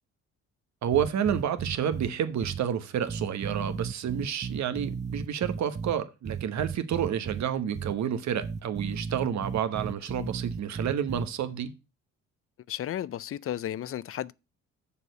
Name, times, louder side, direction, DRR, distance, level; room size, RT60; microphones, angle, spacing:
voice 1, 0.8-11.7, right 9 dB, 65° right, 1.1 m, -29 dB
sound 1, 0.9-2.1 2.4-2.6 3.1-5.9 6.3-7.4 7.8-7.9 8.4-11.3, right 6 dB, 25° right, 0.4 m, -35 dB
voice 2, 12.7-14.3, left 11 dB, 45° left, 0.5 m, -33 dB
7.1 x 4.6 x 6.6 m
cardioid pair, 90°, 30 cm